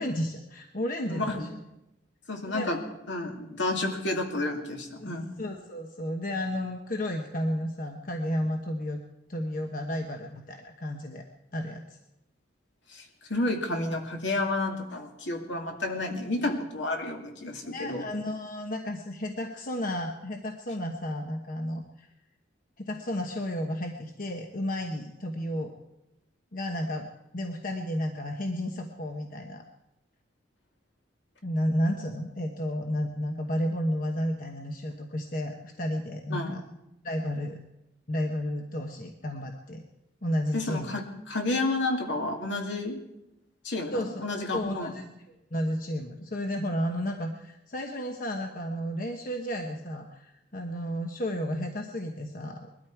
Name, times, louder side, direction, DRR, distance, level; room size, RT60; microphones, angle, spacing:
voice 1, 0.0-1.5 2.5-2.7 5.0-5.1 5.4-9.0 9.3-11.2 11.5-11.8 17.7-22.1 22.8-25.7 26.5-27.1 27.3-29.6 31.4-36.6 37.0-37.6 38.1-39.8 40.2-40.9 43.9-44.1 44.5-45.1 45.5-52.7, equal, 45° left, 3 dB, 1.1 m, -32 dB
voice 2, 1.0-1.5 2.3-2.8 3.1-5.3 12.9-18.1 36.3-36.6 40.5-43.0 43.6-44.9, left 2 dB, 70° left, 2 dB, 2.4 m, -31 dB
21.0 x 13.0 x 4.7 m, 0.89 s
head